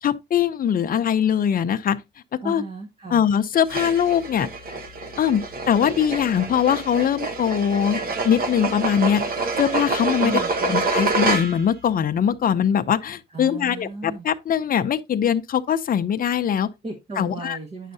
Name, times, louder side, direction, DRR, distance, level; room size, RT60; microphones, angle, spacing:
voice 1, 0.0-2.0 2.3-2.6 3.1-4.5 5.2-9.3 9.6-16.7 17.2-17.6, left 8 dB, 45° left, 0.7 m, -22 dB
voice 2, 2.4-3.2 10.2-10.8 13.3-14.3 16.8-17.9, right 3 dB, 30° right, 1.6 m, -34 dB
sound 1, 3.7-11.8, right 3 dB, 45° right, 1.4 m, -27 dB
9.2 x 6.4 x 2.7 m
cardioid pair, 90°, 20 cm